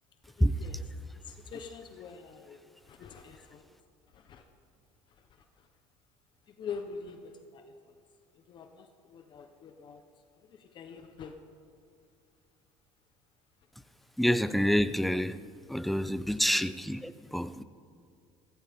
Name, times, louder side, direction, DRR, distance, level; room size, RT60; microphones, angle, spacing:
voice 1, 0.4-0.8 1.1-3.6 4.1-4.4 5.6-5.7 6.5-7.9 8.5-10.0 10.5-11.3 16.5-16.6, left 6 dB, 40° left, 6 dB, 0.9 m, -45 dB
voice 2, 14.2-15.4 15.7-17.6, equal, ahead, 13 dB, 0.4 m, -27 dB
15.5 x 15.0 x 3.6 m, 2.3 s
cardioid pair, 130°, 12 cm